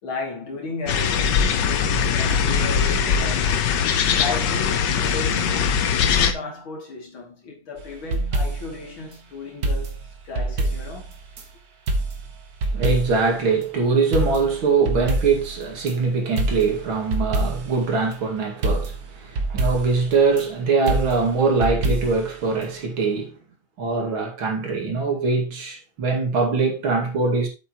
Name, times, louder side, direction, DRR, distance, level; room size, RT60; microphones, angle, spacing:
voice 1, 0.0-3.7 4.1-10.0 10.2-11.1 19.4-19.5, left 3 dB, 85° left, 3.4 m, -34 dB
sound 1, 0.9-6.3, left 7 dB, 65° left, 1.4 m, -21 dB
sound 2, 7.8-8.8 9.6-11.5 11.9-13.3 13.6-13.7 14.1-16.0 16.4-17.8 18.1-18.2 18.6-20.4 20.9-22.3 22.6-22.7, right 2 dB, 55° right, 1.7 m, -26 dB
voice 2, 12.7-23.4 23.8-27.5, right 4 dB, 85° right, 2.9 m, -22 dB
8.0 x 7.9 x 3.0 m
omnidirectional pair, 2.2 m